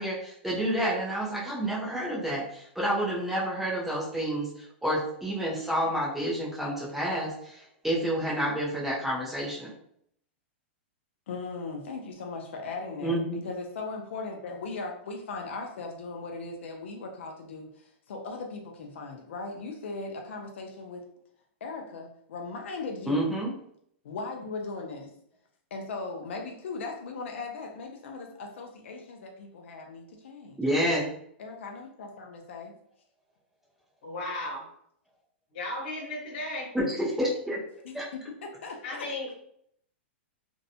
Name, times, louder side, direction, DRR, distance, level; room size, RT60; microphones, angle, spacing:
voice 1, 0.0-9.7 13.0-13.4 23.1-23.5 30.6-31.1 36.7-37.6 37.9-38.0, equal, 5° right, -5 dB, 0.4 m, -29 dB
voice 2, 11.3-21.1 21.6-23.4 24.0-25.1 25.7-30.6 31.4-32.8 37.8-39.1, left 3 dB, 75° left, 2 dB, 0.4 m, -38 dB
voice 3, 34.0-34.6 35.5-36.7 38.8-39.3, left 2 dB, 45° left, -3 dB, 1.1 m, -35 dB
2.6 x 2.1 x 2.6 m, 0.69 s
supercardioid pair, 165°, 6 cm